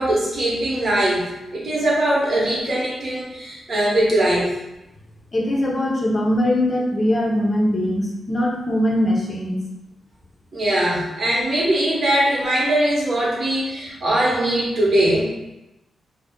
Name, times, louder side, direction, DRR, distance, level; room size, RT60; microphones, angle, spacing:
voice 1, 0.0-4.6 10.5-15.3, right 1 dB, 50° right, -5 dB, 1.0 m, -21 dB
voice 2, 5.3-9.6, left 1 dB, 35° left, -2 dB, 0.5 m, -21 dB
2.4 x 2.1 x 3.5 m, 0.96 s
wide cardioid pair, 115°, 0 cm